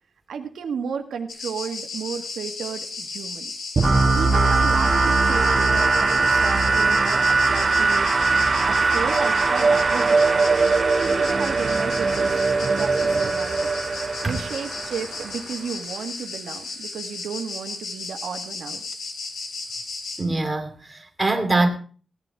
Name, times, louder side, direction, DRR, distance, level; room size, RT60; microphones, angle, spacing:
voice 1, 0.3-3.5 4.1-8.1 8.4-10.5 11.0-13.7 14.2-18.8, right 6 dB, 85° right, 1.6 m, -33 dB
sound 1, 1.3-20.2, left 4 dB, 80° left, 4.0 m, -35 dB
sound 2, 3.8-15.5, right 3 dB, 30° right, 1.5 m, -20 dB
voice 2, 20.2-21.7, right 2 dB, 10° right, 2.6 m, -23 dB
16.0 x 11.0 x 4.7 m
wide cardioid pair, 150°, 0 cm